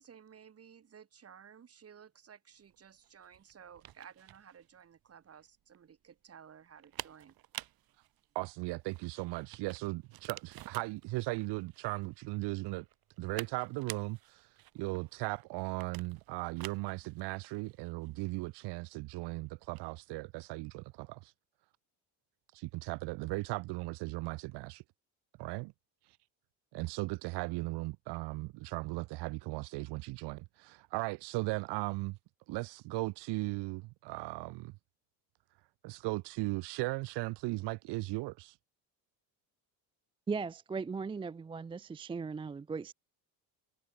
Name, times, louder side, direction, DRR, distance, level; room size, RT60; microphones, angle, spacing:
voice 1, 0.0-7.3, right 8 dB, 35° right, 6.0 m, -55 dB
sound 1, 2.6-20.0, right 14 dB, 60° right, 3.7 m, -51 dB
voice 2, 8.3-12.8 13.2-21.3 22.5-24.8 25.4-25.7 26.7-32.2 32.5-34.7 35.8-38.6, right 22 dB, 75° right, 1.4 m, -37 dB
voice 3, 40.3-42.9, right 5 dB, 15° right, 0.4 m, -38 dB
cardioid pair, 125°, 41 cm